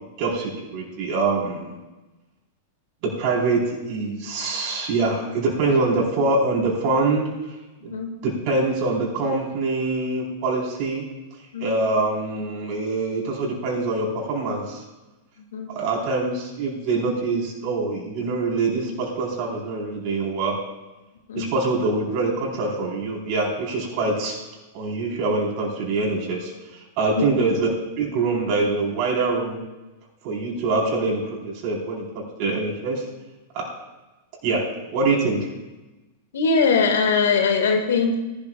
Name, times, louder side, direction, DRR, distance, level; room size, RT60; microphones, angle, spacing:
voice 1, 0.2-1.7 3.0-7.3 7.8-8.0 8.2-11.0 11.6-14.8 15.7-20.6 21.3-24.4 24.7-26.5 27.0-27.7 28.0-29.6 30.2-32.1 32.4-33.0 33.5-33.7 34.4-34.6 34.9-35.5, right 3 dB, 50° right, -1 dB, 4.3 m, -24 dB
voice 2, 11.5-11.9 15.5-15.7 21.3-21.5 27.2-27.3 36.3-38.2, left 5 dB, 70° left, 4 dB, 2.0 m, -21 dB
19.0 x 12.0 x 2.5 m, 1.1 s
hypercardioid pair, 100°, 0 cm